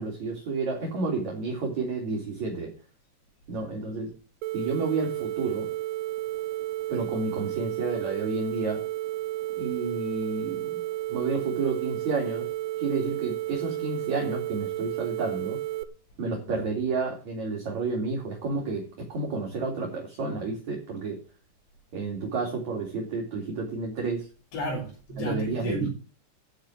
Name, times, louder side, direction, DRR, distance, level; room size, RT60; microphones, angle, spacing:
voice 1, 0.0-2.7 3.5-4.1 4.5-5.7 6.9-8.9 9.6-10.8 11.1-12.5 12.8-15.6 16.2-21.2 21.9-24.3 25.2-25.9, right 3 dB, 45° right, 4.5 m, -30 dB
sound 1, 4.4-15.8, right 16 dB, 80° right, 2.8 m, -32 dB
voice 2, 24.5-25.9, right 1 dB, 75° left, 7.1 m, -32 dB
13.5 x 7.5 x 7.6 m
omnidirectional pair, 5.0 m